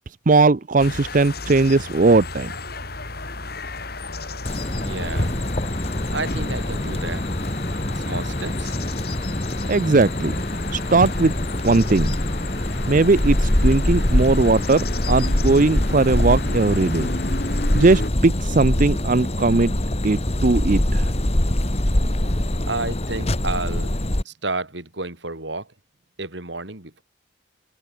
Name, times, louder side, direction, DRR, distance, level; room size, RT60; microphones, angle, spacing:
voice 1, 0.3-2.5 9.7-10.3 10.7-11.3 11.6-12.1 12.9-17.1 17.7-19.7 20.0-21.1, right 3 dB, 45° right, 0.6 m, -18 dB
sound 1, 0.8-18.1, left 2 dB, 55° left, 4.5 m, -33 dB
sound 2, 4.4-24.2, left 1 dB, 35° left, 1.8 m, -24 dB
voice 2, 4.8-5.3 6.1-7.2 7.9-8.7 22.6-23.9 24.3-25.7 26.2-27.0, right 3 dB, 70° right, 4.0 m, -31 dB
head